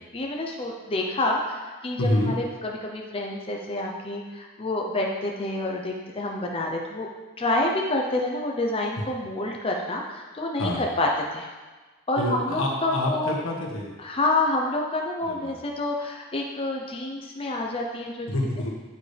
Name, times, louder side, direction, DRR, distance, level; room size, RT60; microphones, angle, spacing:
voice 1, 0.1-7.1 7.4-11.5 12.1-13.3 14.0-18.3, left 2 dB, 30° left, 0 dB, 0.8 m, -28 dB
voice 2, 2.0-2.3 10.6-10.8 12.2-13.9 15.4-15.5 18.3-18.7, left 1 dB, 80° left, -1 dB, 1.7 m, -26 dB
8.9 x 8.5 x 3.4 m, 1.3 s
head